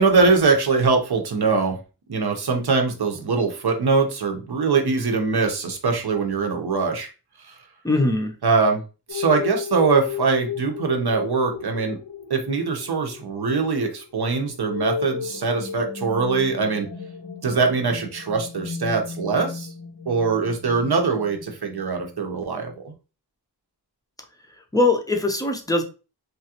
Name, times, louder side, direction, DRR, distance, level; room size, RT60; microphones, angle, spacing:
voice 1, 0.0-1.8 2.1-7.1 8.4-8.8 9.1-12.0 12.3-16.9 17.4-19.7 20.1-22.9, right 4 dB, 65° right, 4 dB, 0.7 m, -22 dB
voice 2, 7.8-8.3 24.7-25.8, left 2 dB, 10° left, 4 dB, 0.5 m, -21 dB
sound 1, 9.1-22.2, left 6 dB, 85° left, 0.8 m, -34 dB
3.1 x 2.4 x 2.8 m, 0.32 s
wide cardioid pair, 75°, 42 cm